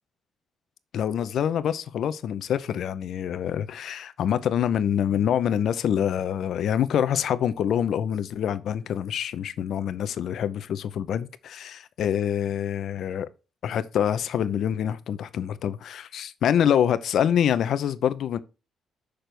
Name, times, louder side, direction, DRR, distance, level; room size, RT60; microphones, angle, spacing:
voice 1, 0.9-13.3 13.6-18.4, left 9 dB, 70° left, 0.6 m, -26 dB
6.5 x 6.0 x 3.3 m
cardioid pair, 90°, 0 cm